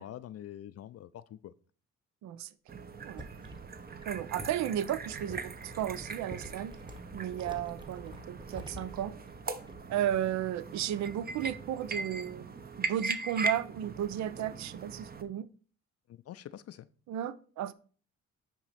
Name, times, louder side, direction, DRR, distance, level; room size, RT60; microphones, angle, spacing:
voice 1, 0.0-1.5 16.1-16.9, left 11 dB, 55° left, 0.5 m, -45 dB
sound 1, 2.7-15.2, right 3 dB, 30° right, 0.8 m, -40 dB
sound 2, 3.1-10.1 10.4-10.7, right 1 dB, 15° right, 1.2 m, -49 dB
voice 2, 4.1-6.7 7.1-9.1 9.9-15.5 17.1-17.7, right 11 dB, 65° right, 0.5 m, -34 dB
9.0 x 3.0 x 5.7 m
cardioid pair, 90°, 30 cm